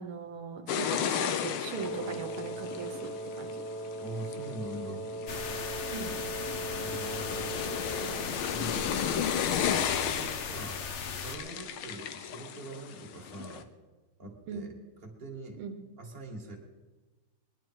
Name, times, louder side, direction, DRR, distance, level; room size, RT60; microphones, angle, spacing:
voice 1, 0.0-3.6 5.9-6.2 14.5-14.7 15.6-15.8, right 6 dB, 80° right, 5 dB, 1.8 m, -39 dB
sound 1, 0.7-13.6, left 8 dB, 85° left, 1.7 m, -35 dB
Wind instrument woodwind instrument, 1.6-8.4, right 1 dB, 30° left, 2.0 m, -39 dB
voice 2, 4.0-5.3 6.8-7.6 8.5-9.0 9.9-10.8 11.2-13.6 14.2-14.7 15.0-15.6 16.0-16.6, right 2 dB, 25° right, 0 dB, 2.2 m, -43 dB
sound 2, 5.3-11.4, left 5 dB, 55° left, 0.8 m, -38 dB
20.0 x 11.0 x 4.7 m, 1.2 s
omnidirectional pair, 2.3 m